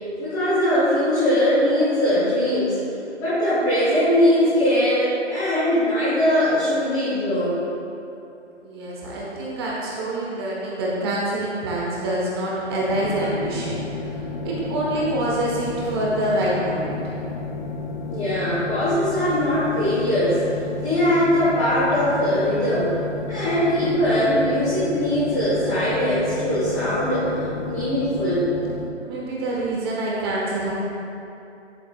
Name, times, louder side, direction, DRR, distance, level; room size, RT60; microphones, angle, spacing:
voice 1, 0.2-2.8 3.2-7.6 18.1-20.4 20.8-22.9 23.3-27.3 27.6-28.4, equal, 10° left, -13 dB, 0.9 m, -21 dB
voice 2, 8.6-17.2 29.0-30.7, right 1 dB, 20° right, -5 dB, 1.2 m, -26 dB
sound 1, 12.9-28.9, left 3 dB, 40° left, 0.7 m, -32 dB
10.5 x 7.6 x 2.3 m, 2.8 s
figure-of-eight pair, 145°, 37 cm